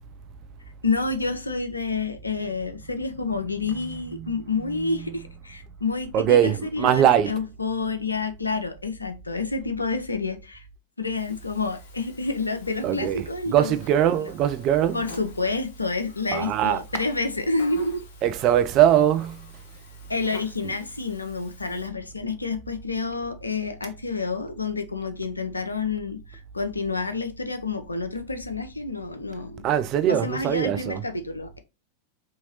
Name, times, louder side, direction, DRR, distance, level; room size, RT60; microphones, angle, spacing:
voice 1, 0.8-10.6 11.0-13.8 14.9-18.0 20.1-29.7 30.1-31.6, left 3 dB, 80° left, 0.5 m, -29 dB
voice 2, 3.8-4.3 4.6-5.1 6.1-7.4 12.8-15.0 16.3-16.8 18.2-19.5 20.6-20.7 29.6-31.0, right 10 dB, 35° right, 0.3 m, -22 dB
Buzz, 11.2-21.9, left 3 dB, 55° left, 0.8 m, -49 dB
2.8 x 2.8 x 2.9 m
figure-of-eight pair, 90°, 0 cm